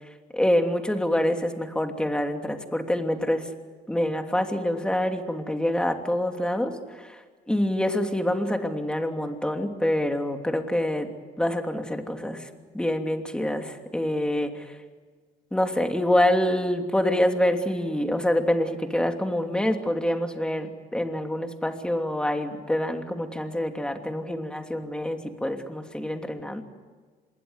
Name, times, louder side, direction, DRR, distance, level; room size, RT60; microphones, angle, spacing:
voice 1, 0.3-3.5 3.9-11.1 11.4-12.5 12.7-14.8 15.5-26.6, left 1 dB, 5° left, 5 dB, 2.9 m, -26 dB
26.5 x 22.0 x 8.2 m, 1.4 s
cardioid pair, 110°, 17 cm